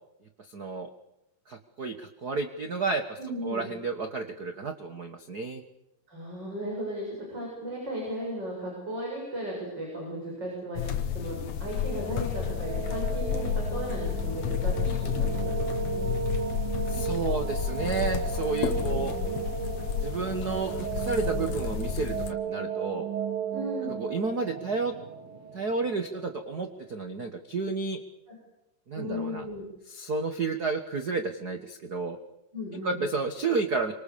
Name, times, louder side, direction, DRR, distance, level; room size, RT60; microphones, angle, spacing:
voice 1, 0.4-0.9 1.5-5.6 16.9-19.1 20.0-23.1 24.0-24.9 25.5-28.0 28.9-29.4 29.9-32.2 32.8-33.9, right 4 dB, 55° right, 6 dB, 1.1 m, -31 dB
voice 2, 3.2-3.7 6.1-10.9 11.1-16.1 18.7-19.4 21.4-21.5 23.5-23.9 28.3-28.4 29.0-29.6 32.5-33.0, equal, 30° right, -2 dB, 8.0 m, -36 dB
sound 1, 10.8-22.3, left 8 dB, 60° left, 2.2 m, -31 dB
sound 2, 11.5-26.4, right 7 dB, 80° right, 4.2 m, -35 dB
28.0 x 25.0 x 7.0 m, 0.86 s
omnidirectional pair, 4.0 m